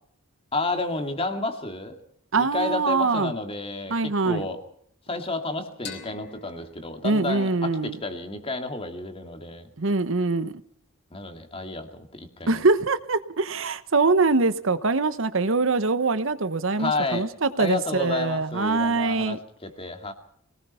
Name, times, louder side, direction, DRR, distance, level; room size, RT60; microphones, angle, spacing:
voice 1, 0.5-2.0 2.4-4.6 5.1-9.7 11.1-12.6 16.8-17.3 17.6-20.1, left 2 dB, 25° left, 2.4 m, -31 dB
voice 2, 2.3-3.3 3.9-4.5 7.0-8.0 9.8-10.5 12.5-19.4, right 3 dB, 65° right, 1.0 m, -23 dB
sound 1, 5.9-9.2, left 4 dB, 50° left, 4.2 m, -46 dB
24.5 x 19.0 x 5.6 m
head